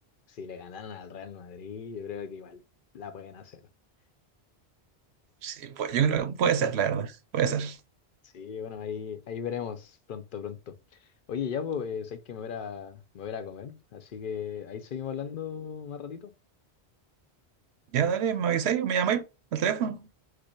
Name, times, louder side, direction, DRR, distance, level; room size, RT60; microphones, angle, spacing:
voice 1, 0.3-2.6 2.9-3.6 8.3-10.8 11.3-16.3, left 7 dB, 60° left, 0.7 m, -37 dB
voice 2, 5.4-7.8 17.9-19.2 19.5-20.0, right 8 dB, 85° right, 0.9 m, -26 dB
5.0 x 2.0 x 4.4 m
omnidirectional pair, 1.1 m